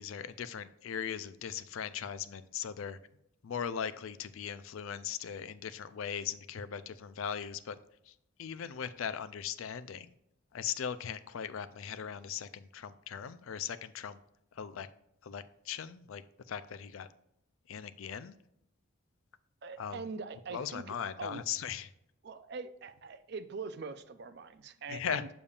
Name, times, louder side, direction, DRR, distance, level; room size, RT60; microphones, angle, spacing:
voice 1, 0.0-3.0 3.4-7.8 8.4-10.1 10.5-14.2 14.5-14.9 15.2-16.2 16.5-17.1 17.7-18.3 19.8-20.0 20.5-21.9 24.9-25.2, left 8 dB, 75° left, 13 dB, 0.4 m, -39 dB
voice 2, 19.6-21.4 22.2-25.3, right 4 dB, 50° right, 11 dB, 0.4 m, -43 dB
7.0 x 6.8 x 2.4 m, 0.80 s
head